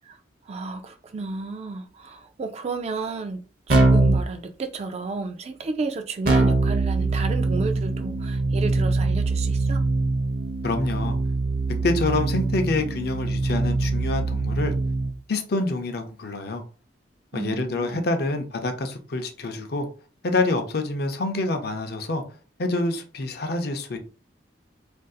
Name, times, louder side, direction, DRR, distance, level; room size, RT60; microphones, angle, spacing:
voice 1, 0.5-9.8 17.3-18.0, right 4 dB, 35° right, 0.3 m, -32 dB
Keyboard (musical), 3.7-4.3 6.3-15.1, right 3 dB, 55° right, 0.8 m, -23 dB
voice 2, 10.6-11.2 11.7-14.7 15.3-16.6 17.3-19.9 20.2-22.2 22.6-24.0, left 2 dB, 60° left, 0.5 m, -26 dB
3.8 x 2.6 x 2.3 m
head